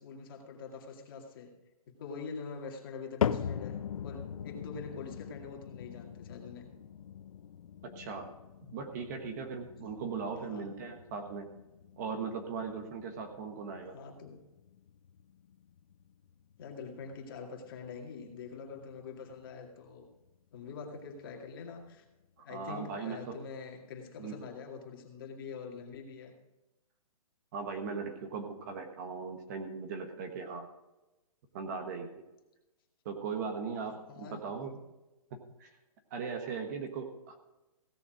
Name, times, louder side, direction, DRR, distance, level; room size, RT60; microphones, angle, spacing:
voice 1, 0.0-1.5 1.9-6.7 10.5-10.6 13.9-14.4 16.6-20.1 20.5-22.0 22.4-26.3 33.9-34.8, left 5 dB, 35° left, 2 dB, 2.2 m, -45 dB
sound 1, 3.2-19.5 19.9-20.4 21.0-21.1 21.9-22.0, left 8 dB, 65° left, 0.6 m, -41 dB
voice 2, 7.8-8.3 8.6-11.5 12.0-14.0 22.4-23.4 24.2-24.4 27.5-30.7 31.5-32.2 33.0-34.7 35.3-35.7 36.1-37.4, right 5 dB, 30° right, 5 dB, 1.3 m, -39 dB
16.5 x 7.1 x 4.9 m, 1.0 s
hypercardioid pair, 165°, 19 cm